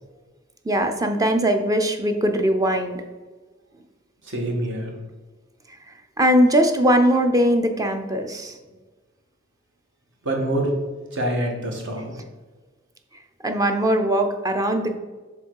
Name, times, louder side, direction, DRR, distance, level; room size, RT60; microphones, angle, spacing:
voice 1, 0.6-3.0 6.2-8.6 13.4-15.0, equal, 15° right, 6 dB, 0.6 m, -20 dB
voice 2, 4.2-4.9 10.2-10.7 11.1-12.1, right 1 dB, 60° right, 1 dB, 1.5 m, -25 dB
6.9 x 3.7 x 4.6 m, 1.3 s
head